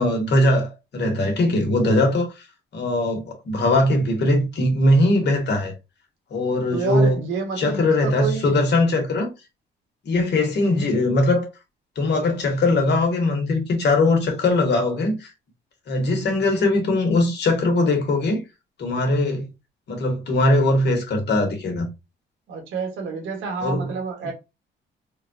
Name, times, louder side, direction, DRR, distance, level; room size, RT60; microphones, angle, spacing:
voice 1, 0.0-2.3 2.7-5.7 6.3-7.2 7.6-9.3 10.0-11.5 11.9-15.3 15.9-18.4 18.8-19.5 19.9-21.9 23.6-23.9 24.2-24.3, left 2 dB, 60° left, 1.3 m, -20 dB
voice 2, 6.7-8.5 10.4-10.5 22.5-24.3, right 5 dB, 80° right, 1.4 m, -28 dB
3.8 x 2.3 x 2.6 m
cardioid pair, 90°, 20 cm